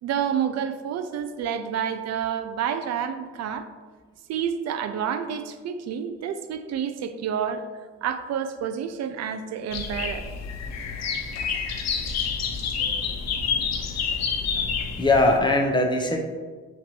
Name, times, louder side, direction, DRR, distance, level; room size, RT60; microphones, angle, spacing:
voice 1, 0.0-3.7 4.3-7.7 8.0-10.2 12.8-13.0, right 8 dB, 60° right, 9 dB, 0.5 m, -29 dB
sound 1, 9.7-15.4, left 6 dB, 60° left, 0.6 m, -28 dB
voice 2, 15.0-16.2, left 2 dB, 15° left, 2 dB, 0.6 m, -21 dB
6.0 x 2.6 x 3.0 m, 1.4 s
cardioid pair, 90°, 30 cm